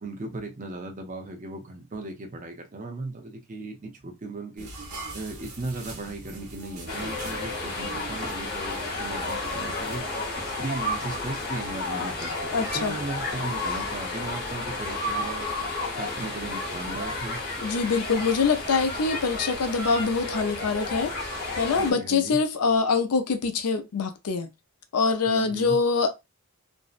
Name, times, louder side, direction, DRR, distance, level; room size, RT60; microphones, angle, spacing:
voice 1, 0.0-4.7 5.1-10.0 10.6-15.5 16.0-17.4 21.8-22.4 25.3-25.8, right 2 dB, 35° right, 0.6 m, -37 dB
sound 1, 4.6-10.0, right 2 dB, 80° right, 1.0 m, -42 dB
sound 2, 6.9-21.9, left 2 dB, 40° left, 0.9 m, -32 dB
voice 2, 12.5-13.0 17.6-21.1 21.6-24.5 24.9-26.2, left 4 dB, 85° left, 0.5 m, -24 dB
2.6 x 2.1 x 2.4 m
head